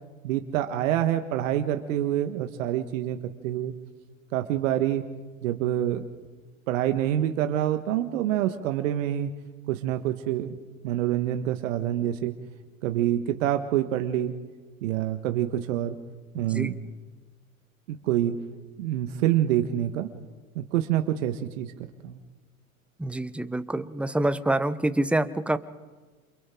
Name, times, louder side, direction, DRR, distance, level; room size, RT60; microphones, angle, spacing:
voice 1, 0.2-3.2 3.4-3.7 4.3-5.0 5.4-6.0 6.7-9.3 9.7-10.5 10.8-12.3 12.8-14.3 14.8-16.0 16.3-16.7 17.9-18.3 18.8-20.1 20.5-21.7 22.0-22.2, right 12 dB, 65° right, 7 dB, 1.5 m, -26 dB
voice 2, 23.0-25.6, right 1 dB, 5° right, 13 dB, 0.9 m, -26 dB
28.5 x 28.0 x 3.8 m, 1.3 s
hypercardioid pair, 85°, 42 cm